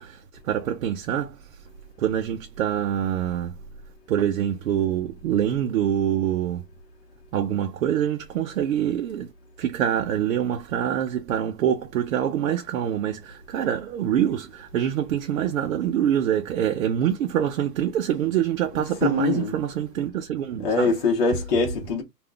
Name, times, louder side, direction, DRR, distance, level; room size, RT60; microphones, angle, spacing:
voice 1, 0.0-1.6 2.0-3.5 4.1-6.6 7.3-9.3 9.6-21.0, right 10 dB, 55° right, 0.6 m, -25 dB
voice 2, 19.0-19.5 20.6-22.0, left 4 dB, 35° left, 1.0 m, -23 dB
3.4 x 2.5 x 2.3 m
hypercardioid pair, 160°, 49 cm